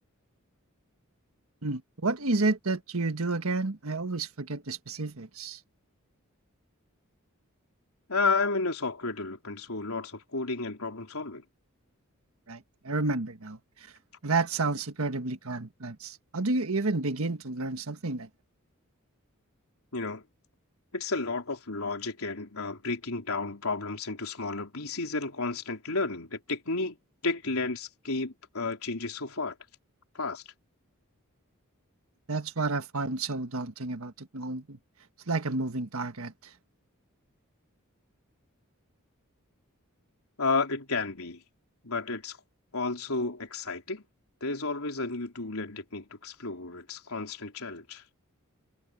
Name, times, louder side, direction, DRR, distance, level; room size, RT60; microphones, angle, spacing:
voice 1, 1.6-5.6 12.5-13.9 14.2-18.3 32.3-34.8 35.3-36.5, right 3 dB, 75° right, 1.5 m, -31 dB
voice 2, 8.1-11.4 19.9-20.2 20.9-27.0 27.2-29.6 30.1-30.4 40.4-41.4 41.8-42.4 42.7-44.0 44.4-48.0, left 3 dB, 85° left, 3.9 m, -32 dB
head